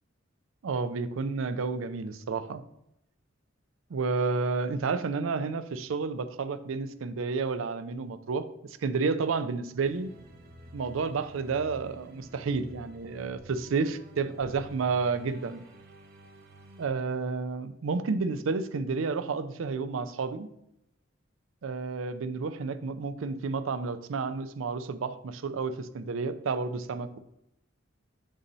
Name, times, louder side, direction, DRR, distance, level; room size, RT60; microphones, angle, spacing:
voice 1, 0.6-2.6 3.9-10.1 10.7-15.6 16.8-20.5 21.6-27.2, right 4 dB, 85° right, 12 dB, 0.4 m, -31 dB
sound 1, 9.8-16.9, right 1 dB, 50° right, 0.7 m, -51 dB
7.0 x 2.7 x 5.4 m, 0.81 s
head